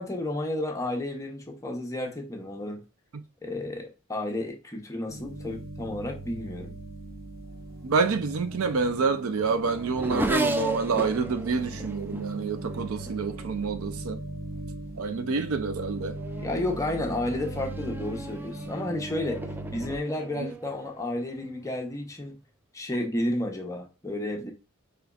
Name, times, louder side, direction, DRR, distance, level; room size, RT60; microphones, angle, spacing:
voice 1, 0.0-2.8 3.4-6.8 16.4-19.4 19.7-22.3 22.7-24.5, left 1 dB, 15° left, 0.7 m, -32 dB
sound 1, 5.1-20.0, right 2 dB, 45° right, 0.8 m, -39 dB
voice 2, 7.8-14.2 15.0-16.2 20.4-20.5, right 4 dB, 75° right, 0.5 m, -27 dB
Race car auto racing / Accelerating revving vroom, 8.3-14.2 15.0-15.4 15.8-21.7, right 1 dB, 10° right, 0.3 m, -36 dB
4.9 x 3.0 x 2.3 m
head